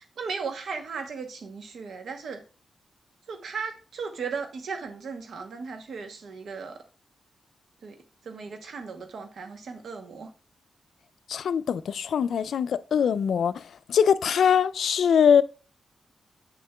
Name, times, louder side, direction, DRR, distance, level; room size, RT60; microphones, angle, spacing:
voice 1, 0.2-2.4 3.3-6.8 7.8-7.9 8.2-10.3, right 5 dB, 80° right, 0.9 m, -36 dB
voice 2, 11.3-13.6 13.9-15.4, left 7 dB, 85° left, 0.3 m, -22 dB
7.6 x 6.5 x 2.3 m
wide cardioid pair, 150°, 0 cm